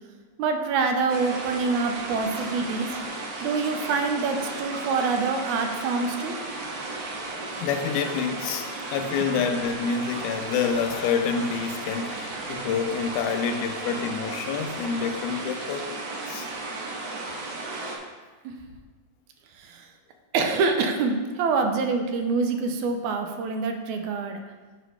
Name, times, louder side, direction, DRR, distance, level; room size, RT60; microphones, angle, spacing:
voice 1, 0.4-2.9 3.4-6.4 9.2-9.3 18.4-18.5 19.6-19.9 20.3-24.4, right 4 dB, 90° right, 5 dB, 2.1 m, -26 dB
sound 1, 1.1-18.0, right 2 dB, 70° right, 1.2 m, -34 dB
voice 2, 7.6-15.9 16.3-16.5, left 6 dB, 85° left, 7 dB, 2.0 m, -27 dB
8.4 x 3.0 x 5.6 m, 1.3 s
omnidirectional pair, 3.4 m